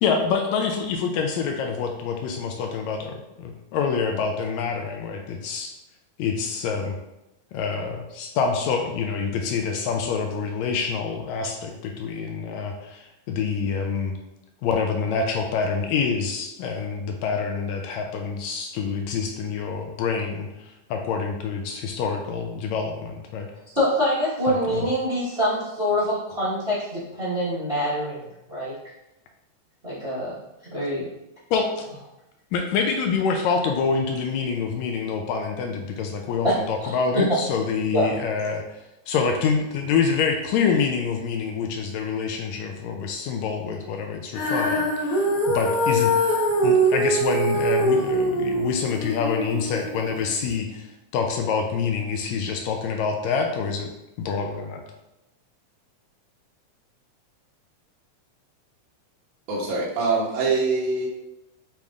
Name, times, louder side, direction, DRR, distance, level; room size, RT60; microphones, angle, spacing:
voice 1, 0.0-5.7 6.2-7.0 7.5-14.2 14.6-23.5 24.5-24.9 31.5-31.8 32.5-38.8 39.1-46.1 46.6-50.9 51.1-53.9 54.2-54.8, left 5 dB, 80° left, 3 dB, 1.7 m, -26 dB
voice 2, 23.7-28.2 28.5-28.7 29.8-30.3 30.7-31.0 36.4-36.5 36.8-36.9 37.9-38.1, equal, 55° right, -11 dB, 0.6 m, -25 dB
Female singing, 44.4-50.6, right 1 dB, 60° left, 1.9 m, -23 dB
voice 3, 59.5-61.1, right 3 dB, 75° right, -5 dB, 2.3 m, -24 dB
6.8 x 3.0 x 2.4 m, 0.91 s
omnidirectional pair, 3.5 m